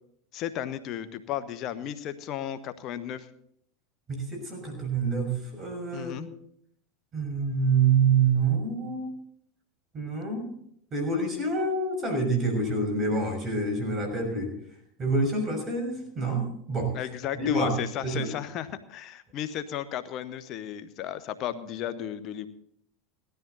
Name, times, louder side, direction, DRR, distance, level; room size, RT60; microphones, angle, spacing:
voice 1, 0.3-3.3 5.9-6.3 16.9-22.5, left 10 dB, 50° left, 13 dB, 1.1 m, -34 dB
voice 2, 4.1-6.3 7.1-9.1 9.9-10.5 10.9-14.5 15.0-16.9 17.4-18.3, right 4 dB, 35° right, 4 dB, 6.2 m, -27 dB
17.0 x 13.0 x 4.1 m, 0.68 s
hypercardioid pair, 90°, 0 cm